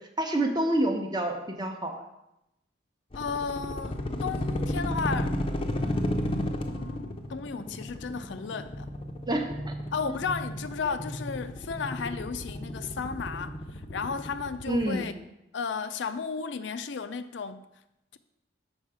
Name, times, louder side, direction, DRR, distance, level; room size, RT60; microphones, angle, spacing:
voice 1, 0.2-2.0 9.3-9.7 10.1-10.2 14.7-15.0, right 1 dB, 20° right, 0.8 m, -28 dB
voice 2, 3.1-5.4 5.8-8.9 9.9-15.1 15.5-17.6, left 5 dB, 70° left, 0.4 m, -34 dB
sound 1, 3.1-14.9, left 1 dB, 30° left, 0.6 m, -33 dB
7.1 x 5.5 x 4.9 m
head